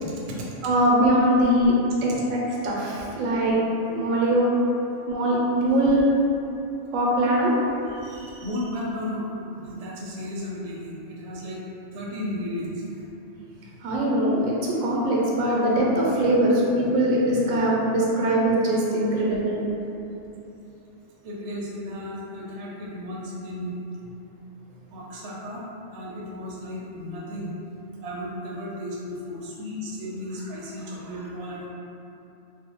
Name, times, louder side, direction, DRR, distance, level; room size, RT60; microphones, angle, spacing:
voice 1, 0.1-0.5 8.4-9.3 9.6-11.6 11.9-12.8 21.2-23.7 24.9-25.6 25.9-27.5 28.0-31.7, left 1 dB, 65° right, -5 dB, 0.7 m, -34 dB
voice 2, 0.6-3.6 3.9-4.5 5.1-6.1 6.9-7.5 8.0-8.3 13.8-19.6, right 1 dB, 90° right, -4 dB, 1.0 m, -22 dB
2.6 x 2.1 x 2.8 m, 2.9 s
omnidirectional pair, 1.3 m